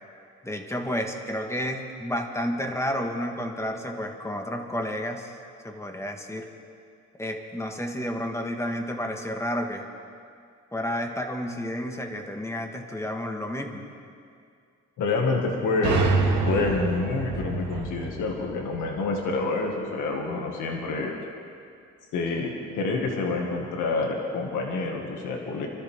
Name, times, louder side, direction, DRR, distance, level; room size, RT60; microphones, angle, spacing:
voice 1, 0.4-5.3 5.6-6.5 7.2-9.9 10.7-13.9, equal, 10° left, 2 dB, 1.7 m, -31 dB
voice 2, 15.0-16.0 16.5-21.1 22.1-25.7, left 3 dB, 85° left, 0 dB, 2.0 m, -27 dB
sound 1, 15.8-19.5, right 3 dB, 80° right, 2.4 m, -27 dB
26.0 x 13.0 x 3.7 m, 2.3 s
cardioid pair, 90°, 30 cm